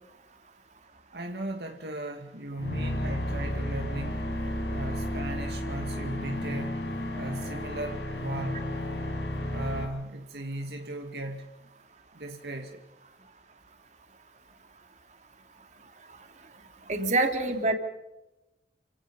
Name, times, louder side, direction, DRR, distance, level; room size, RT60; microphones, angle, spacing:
voice 1, 1.1-4.3 4.7-6.9 7.1-8.7 9.5-11.5 12.1-12.8, right 1 dB, 65° right, 3 dB, 2.3 m, -37 dB
sound 1, 2.6-9.8, left 1 dB, 80° left, 6.3 m, -32 dB
voice 2, 16.9-17.7, right 2 dB, 40° right, 5 dB, 3.1 m, -25 dB
29.5 x 17.5 x 5.6 m, 0.95 s
head